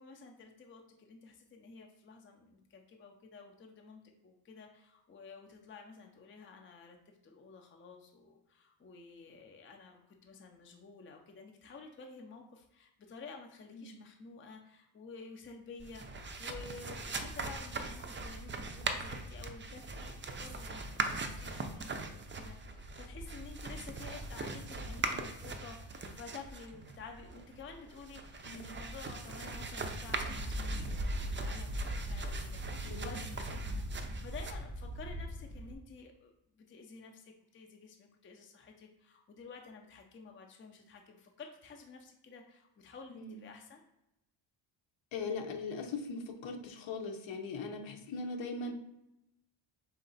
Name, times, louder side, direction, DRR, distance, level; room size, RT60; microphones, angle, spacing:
voice 1, 0.0-32.6 32.9-33.6 34.0-43.8, left 4 dB, 25° left, 3 dB, 0.5 m, -51 dB
sound 1, 15.8-35.7, right 2 dB, 25° right, 0.4 m, -39 dB
voice 2, 28.4-28.8 32.8-33.1 43.1-43.4 45.1-48.7, left 4 dB, 65° left, 5 dB, 0.8 m, -40 dB
4.0 x 3.3 x 4.0 m, 0.87 s
cardioid pair, 125°, 49 cm